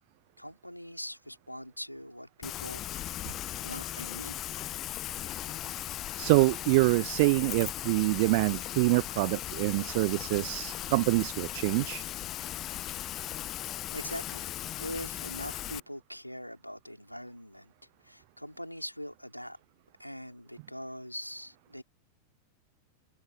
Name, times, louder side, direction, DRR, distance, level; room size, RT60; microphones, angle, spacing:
voice 1, 0.4-3.3 3.6-4.4 13.9-17.7 18.0-19.6 20.0-21.8, equal, 90° left, 4.5 m, -42 dB
Rain, 2.4-15.8, left 13 dB, 35° left, 0.6 m, -38 dB
voice 2, 6.2-12.0, right 26 dB, 50° right, 0.3 m, -26 dB
figure-of-eight pair, 90°, 0 cm